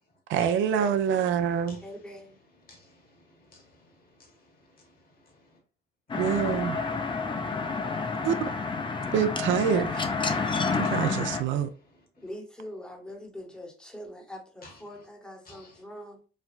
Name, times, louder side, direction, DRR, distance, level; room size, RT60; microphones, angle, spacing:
voice 1, 0.3-1.8 6.2-6.8 8.2-8.3 9.1-10.0 10.7-11.7, right 8 dB, 75° right, 0.4 m, -26 dB
voice 2, 1.8-2.4 12.2-16.2, left 1 dB, 5° left, 0.8 m, -43 dB
voice 3, 2.5-5.6 6.1-6.2 11.6-12.2 14.6-14.8 15.4-15.8, left 2 dB, 45° left, 1.2 m, -55 dB
sound 1, 6.1-11.4, left 4 dB, 25° left, 0.4 m, -29 dB
3.2 x 2.2 x 2.4 m
cardioid pair, 90°, 20 cm